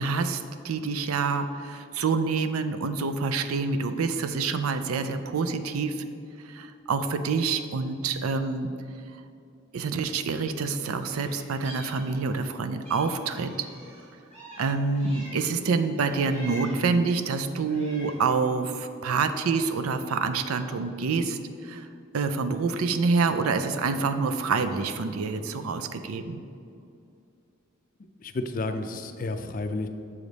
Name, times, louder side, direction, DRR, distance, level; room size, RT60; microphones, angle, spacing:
voice 1, 0.0-6.0 6.4-8.7 9.7-13.7 14.6-21.9 22.1-26.4, right 4 dB, 90° right, 9 dB, 0.4 m, -27 dB
Meow, 11.1-12.5 12.8-15.6 16.0-17.0 17.5-18.3, equal, 30° right, 1.6 m, -45 dB
voice 2, 28.2-29.9, left 2 dB, 40° left, 7 dB, 0.4 m, -31 dB
7.1 x 5.0 x 4.0 m, 2.5 s
head